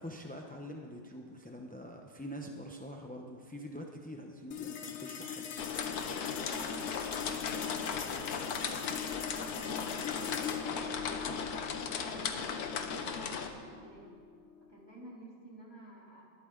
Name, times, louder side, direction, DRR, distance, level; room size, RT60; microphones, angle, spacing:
voice 1, 0.0-5.5, equal, 10° left, 1 dB, 0.4 m, -45 dB
sound 1, 4.5-15.1, left 8 dB, 60° left, 0.9 m, -42 dB
sound 2, 5.6-13.5, left 6 dB, 85° left, 1.5 m, -37 dB
voice 2, 7.2-10.4 10.7-11.6 11.9-14.2 14.6-16.3, right 1 dB, 15° right, -5 dB, 3.3 m, -54 dB
20.5 x 13.0 x 3.8 m, 2.1 s
omnidirectional pair, 1.6 m